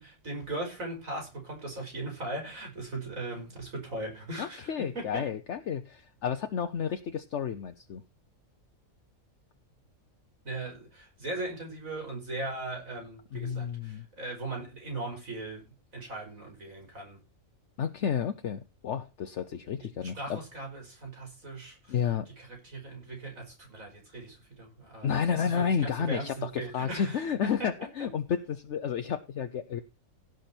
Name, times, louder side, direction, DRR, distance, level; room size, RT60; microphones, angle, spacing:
voice 1, 0.0-5.3 10.4-15.6 15.9-17.2 20.0-22.0 22.4-27.2 27.6-27.7 28.0-28.1, right 2 dB, 75° right, 5.7 m, -39 dB
voice 2, 4.4-8.0 13.3-14.1 17.8-20.4 21.9-22.3 25.0-29.8, left 7 dB, 60° left, 1.1 m, -31 dB
17.0 x 6.4 x 4.5 m
omnidirectional pair, 1.4 m